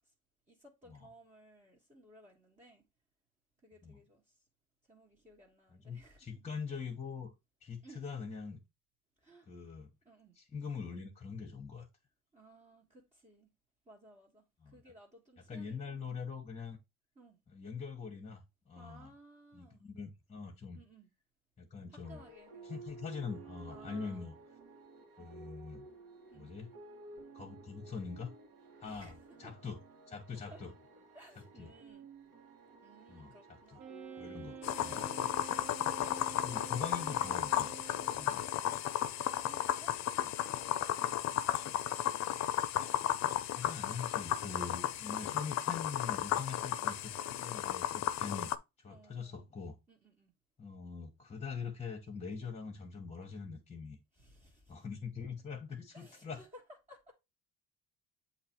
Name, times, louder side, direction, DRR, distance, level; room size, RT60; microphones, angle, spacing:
voice 1, 0.5-2.8 3.6-4.3 4.9-6.4 7.8-8.0 9.2-9.5 10.0-10.3 12.3-13.5 13.8-16.0 17.1-17.4 18.7-19.8 20.7-21.1 21.9-22.8 23.7-24.3 25.2-25.3 26.3-26.6 28.8-29.5 30.5-30.6 31.1-32.1 32.8-33.9 34.8-36.0 38.0-42.0 46.6-47.6 48.9-49.5 49.9-50.3 54.1-54.7 55.9-56.6 56.9-57.1, right 1 dB, 20° right, 1.6 m, -59 dB
voice 2, 5.7-7.3 7.6-8.6 9.5-9.9 10.4-11.9 14.6-14.7 15.5-16.8 17.5-19.1 19.5-20.8 21.6-22.2 22.6-24.4 25.2-25.9 26.3-26.7 27.3-28.3 28.8-29.1 29.4-29.8 30.1-30.7 31.6-31.7 33.1-33.8 34.2-35.1 36.4-37.7 38.1-38.4 40.2-40.3 43.5-48.5 48.8-49.8 50.6-54.0 54.7-56.4, left 5 dB, 20° left, 1.2 m, -43 dB
sound 1, 22.0-35.8, right 3 dB, 75° right, 1.6 m, -54 dB
Wind instrument woodwind instrument, 33.8-38.4, right 7 dB, 50° right, 1.1 m, -49 dB
sound 2, 34.6-48.6, left 11 dB, 50° left, 0.5 m, -34 dB
7.9 x 3.0 x 4.4 m
cardioid pair, 125°, 36 cm